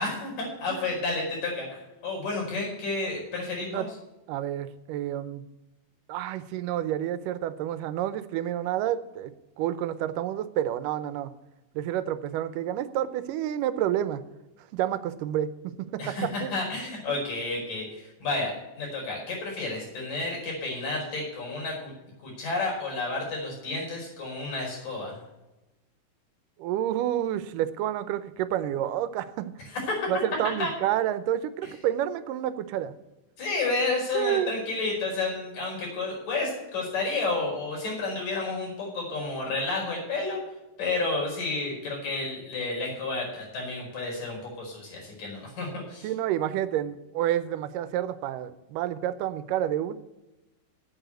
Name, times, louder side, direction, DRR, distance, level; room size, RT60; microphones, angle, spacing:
voice 1, 0.0-3.9 16.0-21.9 22.2-25.2 29.7-30.0 30.6-30.7 33.4-40.4 40.8-46.1, left 3 dB, 85° left, -1 dB, 6.5 m, -31 dB
voice 2, 4.3-5.4 6.1-9.3 9.6-11.3 11.8-14.2 14.7-15.7 16.1-16.6 17.1-17.2 26.6-29.5 30.1-32.9 34.1-34.6 46.0-49.9, right 11 dB, 85° right, 14 dB, 2.3 m, -29 dB
9.0 x 8.9 x 7.9 m, 1.0 s
omnidirectional pair, 3.8 m